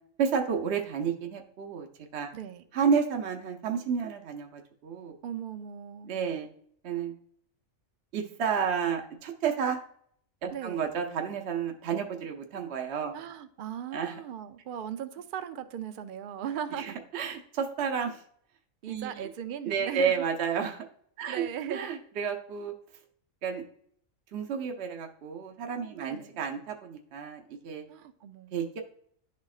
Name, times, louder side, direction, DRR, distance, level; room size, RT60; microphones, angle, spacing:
voice 1, 0.2-1.9 2.1-2.3 2.7-5.2 6.1-6.5 6.8-7.1 8.1-9.8 10.4-13.1 13.9-14.2 16.8-18.2 18.9-19.3 19.6-20.8 21.2-21.4 21.7-22.7 23.4-23.6 24.3-27.9 28.5-28.8, right 6 dB, 60° right, 0.9 m, -31 dB
voice 2, 2.3-2.6 5.2-6.2 10.5-10.9 13.1-17.0 18.8-20.2 21.3-21.9 26.0-26.3 27.9-28.6, right 9 dB, 80° right, 0.4 m, -38 dB
11.0 x 4.2 x 2.4 m
omnidirectional pair, 1.4 m